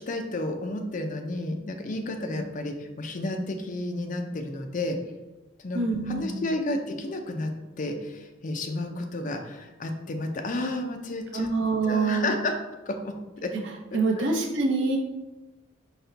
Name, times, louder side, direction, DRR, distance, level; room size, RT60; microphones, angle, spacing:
voice 1, 0.1-5.0 5.6-11.5 11.8-12.6 12.9-13.5 13.9-14.2, left 2 dB, 40° left, 4 dB, 0.4 m, -32 dB
voice 2, 5.7-6.5 11.3-12.3 13.9-15.0, right 3 dB, 65° right, -1 dB, 0.7 m, -25 dB
4.1 x 2.2 x 3.8 m, 1.1 s
head